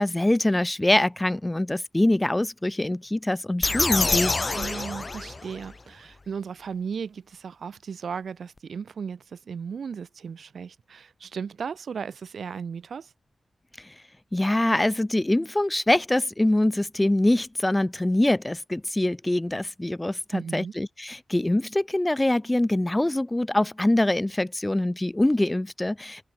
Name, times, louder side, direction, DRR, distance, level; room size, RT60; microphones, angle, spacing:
voice 1, 0.0-4.4 13.8-13.9 14.3-26.2, left 1 dB, 15° left, 1.5 m, -24 dB
sound 1, 3.6-5.7, left 3 dB, 30° left, 0.8 m, -26 dB
voice 2, 4.5-13.1 20.3-20.7, right 6 dB, 75° right, 7.0 m, -36 dB
wide cardioid pair, 135°, 0 cm